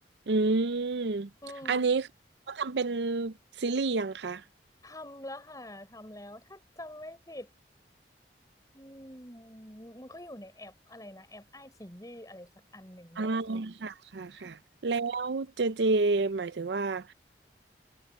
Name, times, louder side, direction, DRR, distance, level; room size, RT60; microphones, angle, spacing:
voice 1, 0.3-1.3 1.7-2.0 2.5-4.4 13.2-17.1, right 3 dB, 75° right, 0.6 m, -29 dB
voice 2, 1.4-1.9 4.8-7.5 8.7-13.4 14.3-14.6, left 1 dB, 20° left, 6.7 m, -46 dB
head